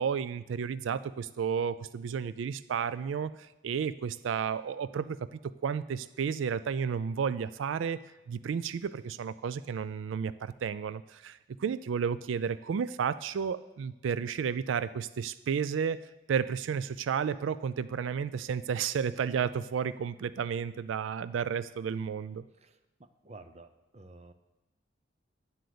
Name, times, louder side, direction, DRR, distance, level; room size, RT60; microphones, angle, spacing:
voice 1, 0.0-8.0 8.3-16.0 16.3-22.4, right 7 dB, 85° right, 16 dB, 0.3 m, -32 dB
voice 2, 22.5-24.3, right 2 dB, 35° right, 10 dB, 0.7 m, -52 dB
10.5 x 7.7 x 6.8 m, 1.0 s
head